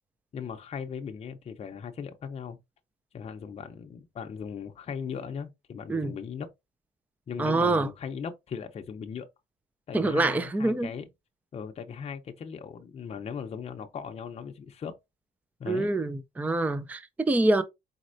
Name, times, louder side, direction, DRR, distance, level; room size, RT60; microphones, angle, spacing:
voice 1, 0.3-2.6 3.1-6.5 7.3-9.3 9.9-11.1 11.5-15.0 15.6-15.9, left 6 dB, 40° left, 0.6 m, -38 dB
voice 2, 7.4-7.9 9.9-10.9 15.7-17.6, right 2 dB, 10° right, 0.4 m, -25 dB
4.2 x 4.1 x 2.5 m
cardioid pair, 115°, 17 cm